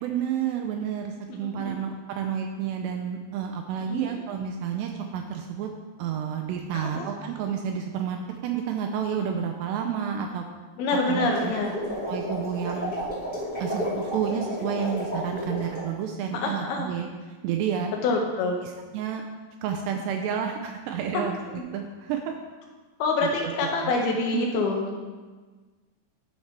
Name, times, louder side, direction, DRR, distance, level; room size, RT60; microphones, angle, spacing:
voice 1, 0.0-5.7 6.0-10.5 11.1-11.6 12.1-12.9 13.6-17.1 17.4-17.9 18.6-19.2 19.6-22.3 23.2-23.5 23.8-23.9 24.3-24.5, right 8 dB, 90° right, 4 dB, 2.4 m, -30 dB
voice 2, 1.4-1.8 3.9-4.2 6.7-7.1 10.8-11.8 16.3-16.9 18.0-18.6 21.1-21.3 21.5-21.6 23.0-25.0, left 3 dB, 80° left, 0 dB, 2.2 m, -26 dB
sound 1, 11.1-15.9, equal, 20° left, 1.6 m, -32 dB
12.5 x 4.3 x 4.6 m, 1.4 s
omnidirectional pair, 5.5 m